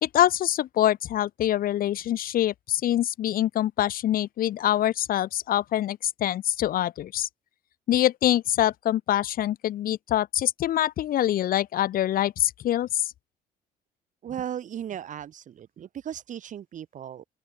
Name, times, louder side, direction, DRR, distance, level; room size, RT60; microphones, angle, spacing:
voice 1, 0.0-7.3 7.9-13.1, left 12 dB, 60° left, 1.0 m, -25 dB
voice 2, 14.2-17.2, right 9 dB, 50° right, 1.3 m, -36 dB
open air
cardioid pair, 110°, 17 cm